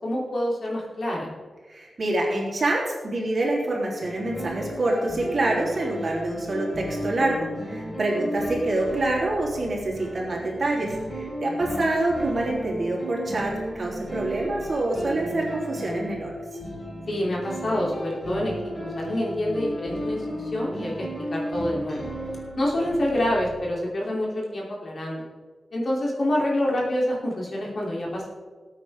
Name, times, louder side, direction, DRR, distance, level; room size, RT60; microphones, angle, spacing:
voice 1, 0.0-1.3 8.1-8.3 11.4-11.8 15.2-15.4 17.1-18.5 18.8-22.1 22.6-25.3 25.7-28.3, left 1 dB, 45° left, -3 dB, 3.4 m, -27 dB
voice 2, 1.7-13.5 13.8-16.3, right 2 dB, 40° right, -3 dB, 3.7 m, -26 dB
sound 1, 4.0-23.5, equal, 20° left, 4.7 m, -34 dB
19.5 x 9.0 x 3.7 m, 1.5 s
wide cardioid pair, 165°, 0 cm